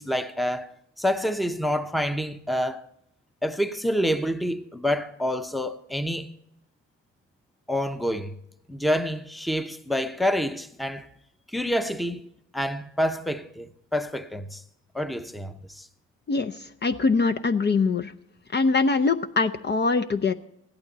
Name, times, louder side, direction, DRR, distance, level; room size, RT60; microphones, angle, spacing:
voice 1, 0.0-2.8 3.4-6.3 7.7-8.4 8.7-11.1 11.5-12.2 12.5-14.6 14.9-15.9, equal, ahead, 0.8 m, -27 dB
voice 2, 16.8-18.1 18.5-20.3, left 4 dB, 35° left, 0.7 m, -23 dB
15.5 x 12.0 x 4.1 m
cardioid pair, 90°, 30 cm